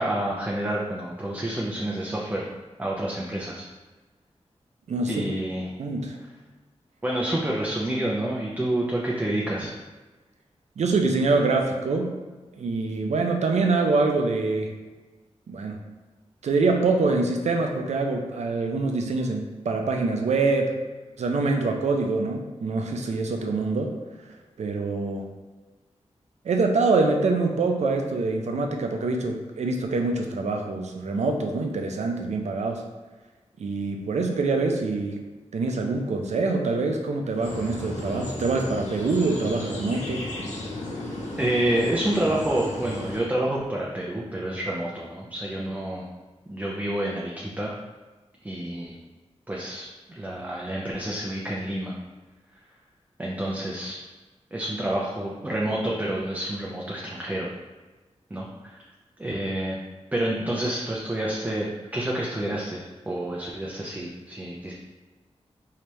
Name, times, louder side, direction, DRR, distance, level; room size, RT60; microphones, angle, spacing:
voice 1, 0.0-2.5 2.8-3.6 5.1-5.7 7.0-9.7 41.4-46.1 46.5-47.8 48.4-49.0 49.5-51.9 53.2-54.0 54.5-57.5 58.3-58.8 59.2-59.8 60.1-64.7, right 1 dB, 15° right, -4 dB, 0.4 m, -28 dB
voice 2, 4.9-5.3 5.8-6.2 10.8-12.2 12.6-14.7 15.5-15.8 16.4-20.8 21.2-23.9 24.6-25.3 26.4-32.8 33.6-35.2 35.5-40.2, right 3 dB, 80° right, 3 dB, 0.5 m, -25 dB
sound 1, 37.4-43.2, left 1 dB, 85° left, 0.9 m, -34 dB
3.3 x 2.8 x 3.0 m, 1.3 s
wide cardioid pair, 105°, 12 cm